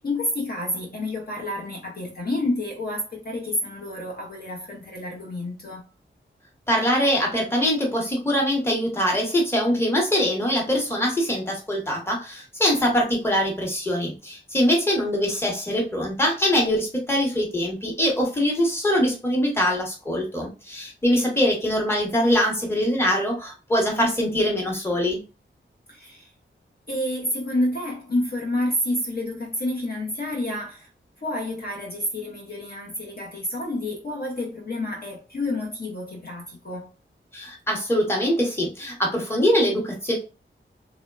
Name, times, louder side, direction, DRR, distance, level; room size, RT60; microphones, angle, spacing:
voice 1, 0.0-5.8 25.9-26.3 26.9-30.9 31.2-36.9, left 1 dB, 50° left, 0.6 m, -29 dB
voice 2, 6.7-25.2 37.3-40.2, equal, 10° left, 0.8 m, -23 dB
2.9 x 2.1 x 2.2 m
wide cardioid pair, 110°, 20 cm